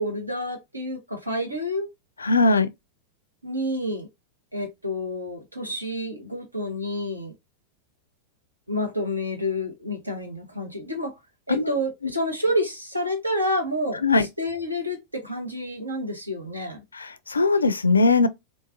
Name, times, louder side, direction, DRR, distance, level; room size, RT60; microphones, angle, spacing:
voice 1, 0.0-1.9 3.4-4.1 4.5-7.3 8.7-11.1 11.5-16.8, left 1 dB, 85° right, 1.0 m, -29 dB
voice 2, 2.2-2.7 11.5-11.8 12.0-12.1 14.0-14.3 16.9-18.3, left 3 dB, 75° left, 0.4 m, -20 dB
3.8 x 2.4 x 2.5 m
figure-of-eight pair, 90°, 0 cm